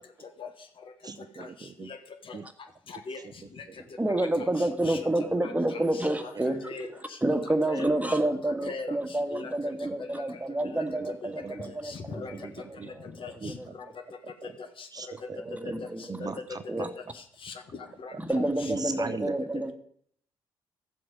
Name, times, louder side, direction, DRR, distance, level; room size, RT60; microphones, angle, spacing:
voice 1, 1.0-1.9 2.3-2.4 11.2-11.7 12.8-12.9 13.4-13.5 14.9-15.4 15.6-15.7 16.1-16.9 18.7-19.4, right 5 dB, 35° right, 12 dB, 0.6 m, -38 dB
voice 2, 2.9-3.2 4.8-5.1 5.4-6.0 6.6-7.2 7.7-7.9 8.5-8.9 9.3-9.5 10.0-10.2 10.7-10.8 11.7-12.3 13.2-13.5 14.8-14.9 16.2-16.3 17.4-18.7, left 4 dB, 50° left, 8 dB, 1.3 m, -40 dB
voice 3, 4.0-6.7 7.2-13.1 13.5-13.7 15.3-16.2 16.7-16.9 18.3-19.7, right 1 dB, 15° right, 7 dB, 1.6 m, -29 dB
13.5 x 7.7 x 5.2 m, 0.64 s
hypercardioid pair, 45°, 12 cm